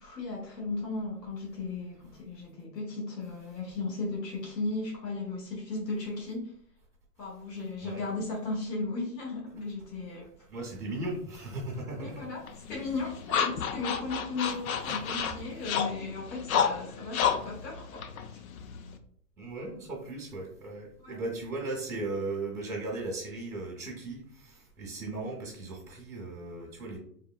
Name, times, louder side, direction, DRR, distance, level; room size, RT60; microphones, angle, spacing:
voice 1, 0.0-6.5 7.2-10.3 12.0-12.4 12.7-18.0 21.0-21.2, left 3 dB, 90° left, -2 dB, 1.2 m, -36 dB
voice 2, 10.5-12.3 14.9-15.0 19.4-27.0, right 2 dB, 10° right, -8 dB, 0.5 m, -37 dB
sound 1, 12.5-19.0, left 7 dB, 60° left, 0.5 m, -31 dB
3.8 x 2.1 x 2.3 m, 0.63 s
hypercardioid pair, 135°, 48 cm